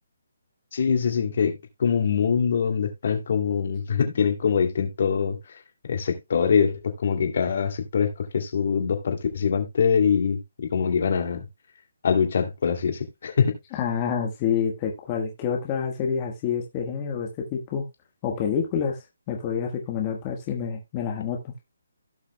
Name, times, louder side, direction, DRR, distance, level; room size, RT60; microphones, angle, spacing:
voice 1, 0.7-5.6 5.9-10.4 10.7-11.4 12.0-13.5, left 6 dB, 55° left, 2.5 m, -24 dB
voice 2, 13.7-17.9 18.2-21.4, left 7 dB, 25° left, 1.3 m, -28 dB
16.5 x 5.8 x 2.2 m
hypercardioid pair, 160°, 0 cm